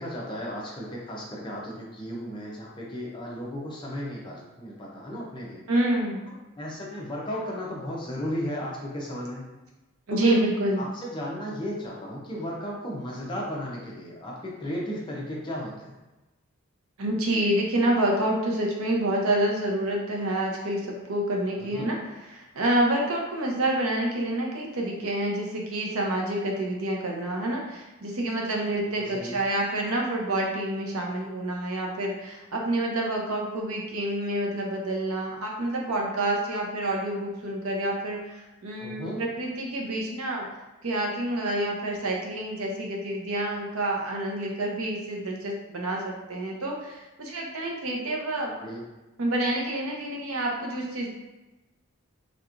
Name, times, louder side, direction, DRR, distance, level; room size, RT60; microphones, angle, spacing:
voice 1, 0.0-5.6 6.6-9.4 10.1-10.4 10.8-15.9 21.6-21.9 29.0-29.4 38.8-39.2 48.6-48.8, equal, 20° left, -4 dB, 0.6 m, -35 dB
voice 2, 5.7-6.3 10.1-10.9 17.0-22.0 22.2-40.5 40.8-48.5 49.2-51.1, right 1 dB, 75° right, -1 dB, 0.7 m, -28 dB
3.4 x 2.9 x 2.5 m, 1.1 s
head